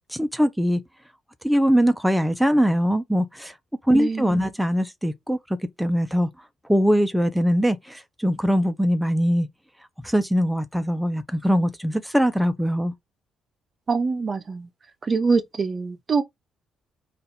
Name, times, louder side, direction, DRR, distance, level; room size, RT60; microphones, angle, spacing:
voice 1, 0.1-0.8 1.4-3.5 3.8-5.4 5.8-6.3 6.7-9.5 10.0-12.9, equal, ahead, 0.7 m, -21 dB
voice 2, 3.9-4.5 13.9-14.7 15.0-16.2, right 4 dB, 40° right, 0.8 m, -24 dB
4.2 x 2.6 x 4.2 m
cardioid pair, 90°, 0 cm